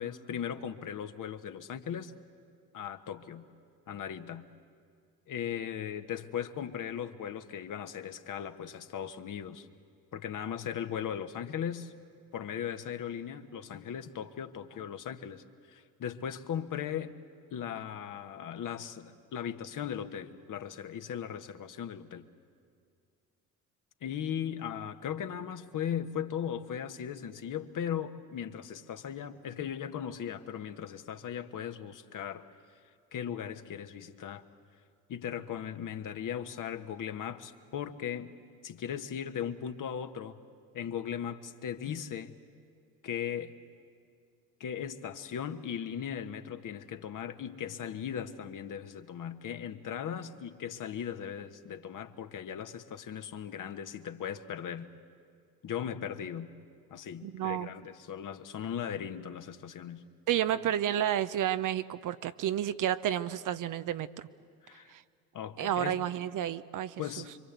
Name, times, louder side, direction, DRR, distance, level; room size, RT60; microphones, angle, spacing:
voice 1, 0.0-2.1 2.7-3.4 3.9-4.4 5.3-9.7 10.1-11.9 12.3-17.2 17.5-22.2 24.0-32.4 33.1-34.4 35.1-38.3 38.6-40.4 40.7-42.4 43.0-43.5 44.6-54.9 55.6-56.5 56.9-60.0 64.6-64.9 65.3-66.0 67.0-67.3, left 8 dB, 45° left, 8 dB, 1.4 m, -38 dB
voice 2, 57.2-57.7 60.3-64.3 64.9-65.0 65.6-67.2, right 11 dB, 45° right, 13 dB, 0.8 m, -31 dB
26.5 x 24.5 x 8.2 m, 2.2 s
hypercardioid pair, 60°, 46 cm